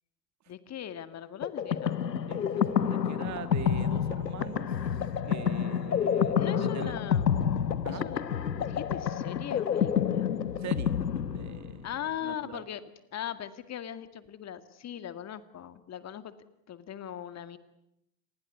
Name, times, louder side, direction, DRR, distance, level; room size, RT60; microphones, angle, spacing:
voice 1, 0.5-2.1 6.4-7.5 7.9-8.2 8.6-10.3 11.8-12.8 13.1-16.4 16.7-17.6, left 10 dB, 35° left, 12 dB, 2.2 m, -40 dB
sound 1, 1.4-11.9, left 8 dB, 85° left, 1.3 m, -29 dB
voice 2, 2.3-4.7 5.2-7.0 7.8-8.1 10.6-11.1 11.3-11.9 12.2-12.6, right 9 dB, 35° right, 13 dB, 1.8 m, -42 dB
28.5 x 21.5 x 9.6 m, 0.82 s
figure-of-eight pair, 80°, 48 cm